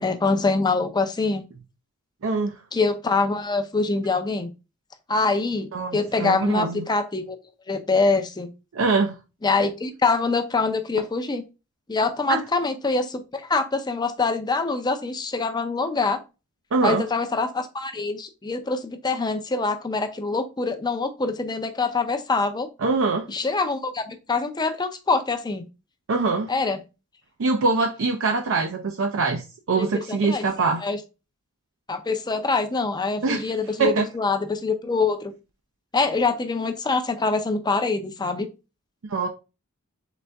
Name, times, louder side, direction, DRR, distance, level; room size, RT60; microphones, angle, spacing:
voice 1, 0.0-1.4 2.7-4.5 5.1-7.4 7.7-8.5 9.4-11.4 11.9-16.2 16.8-22.7 23.3-25.7 26.5-26.8 29.8-30.5 30.8-31.0 31.9-35.3 35.9-38.5, left 3 dB, 20° left, 0.5 m, -24 dB
voice 2, 2.2-2.6 5.7-6.8 8.7-9.1 12.3-12.4 16.7-17.0 22.8-23.3 26.1-26.5 27.4-30.8 33.2-33.5 33.8-34.1 39.0-39.3, right 4 dB, 60° right, 0.5 m, -23 dB
4.0 x 3.3 x 3.4 m
head